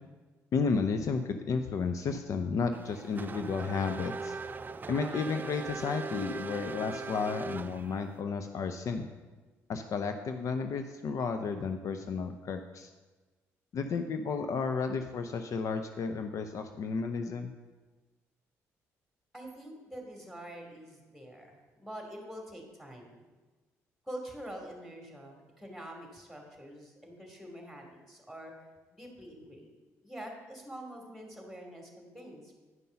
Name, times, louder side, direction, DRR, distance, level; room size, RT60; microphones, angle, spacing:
voice 1, 0.5-4.3 4.9-9.1 9.7-12.9 13.7-17.5, left 5 dB, 60° left, 7 dB, 0.6 m, -32 dB
Race car auto racing / Accelerating revving vroom, 2.7-8.2, right 4 dB, 30° right, 0.4 m, -40 dB
voice 2, 19.3-23.1 24.0-28.5 28.9-29.7 30.0-32.6, right 1 dB, ahead, 1 dB, 2.7 m, -45 dB
9.7 x 5.4 x 5.7 m, 1.3 s
supercardioid pair, 65°, 6 cm